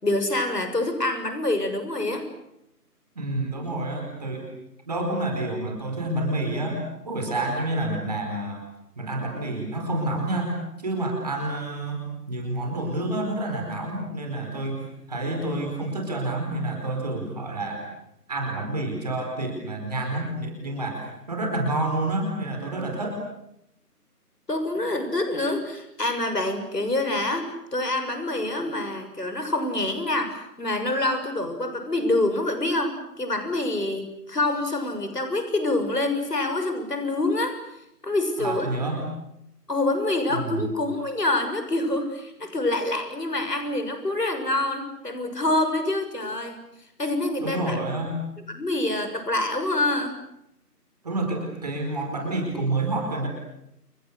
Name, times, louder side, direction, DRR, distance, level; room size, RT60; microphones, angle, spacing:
voice 1, 0.0-2.3 24.5-37.6 38.0-38.7 39.7-46.6 47.0-47.8 48.5-50.1, left 2 dB, 75° left, 7 dB, 6.8 m, -26 dB
voice 2, 3.1-4.5 4.9-8.6 9.0-17.8 18.3-23.2 38.4-39.1 40.3-40.7 47.4-48.2 51.0-53.3, right 2 dB, 25° right, 1 dB, 4.7 m, -29 dB
30.0 x 29.0 x 6.7 m, 0.81 s
figure-of-eight pair, 170°, 48 cm